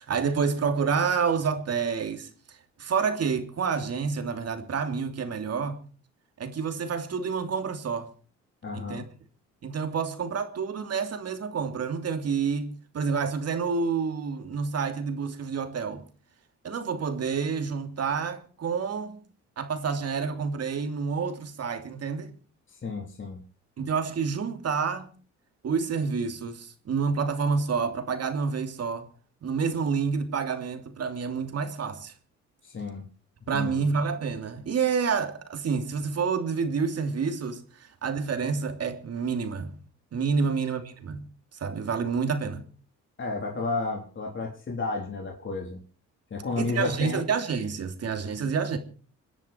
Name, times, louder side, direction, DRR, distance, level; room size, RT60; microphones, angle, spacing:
voice 1, 0.0-5.8 6.4-8.1 8.7-9.0 9.6-16.0 16.6-19.2 19.6-22.3 23.8-25.1 25.6-29.1 29.4-32.1 33.5-39.7 40.1-41.2 41.6-42.6 46.5-48.8, right 5 dB, 55° right, 3.0 m, -28 dB
voice 2, 8.6-9.0 22.7-23.4 32.6-33.1 33.5-33.8 43.2-45.8 46.3-47.3, left 3 dB, 40° left, 4.2 m, -32 dB
27.0 x 10.5 x 4.6 m
cardioid pair, 90°, 30 cm